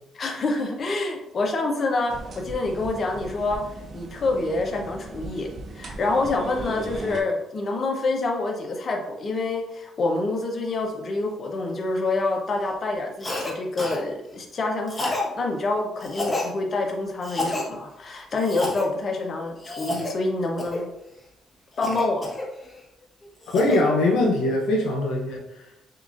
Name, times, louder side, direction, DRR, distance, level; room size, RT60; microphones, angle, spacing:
voice 1, 0.1-3.6 3.9-5.5 5.7-20.8 21.8-22.2, left 2 dB, 45° left, 1 dB, 0.7 m, -27 dB
sound 1, 2.1-7.2, right 2 dB, 50° right, 0.5 m, -38 dB
Cough, 13.2-13.5 13.8-14.0 14.9-15.3 16.0-16.5 17.2-17.7 18.4-18.9 19.6-20.1 20.6-20.9 21.8-22.8 23.2-23.8, left 2 dB, 25° left, 1.1 m, -29 dB
voice 2, 23.5-25.6, left 2 dB, 90° left, 0 dB, 0.7 m, -22 dB
6.7 x 2.5 x 2.5 m, 0.89 s
cardioid pair, 90°, 0 cm